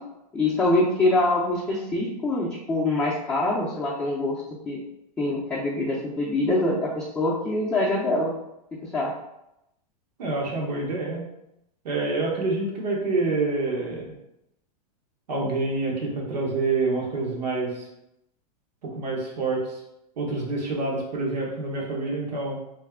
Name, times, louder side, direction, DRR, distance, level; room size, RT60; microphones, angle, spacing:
voice 1, 0.3-4.8 5.2-8.3 8.9-9.1, left 2 dB, 10° left, -7 dB, 0.6 m, -24 dB
voice 2, 10.2-11.2 11.8-14.1 15.3-17.9 18.8-19.8 20.2-22.6, right 3 dB, 80° right, -2 dB, 1.4 m, -27 dB
3.3 x 2.8 x 3.5 m, 0.84 s
supercardioid pair, 140°, 21 cm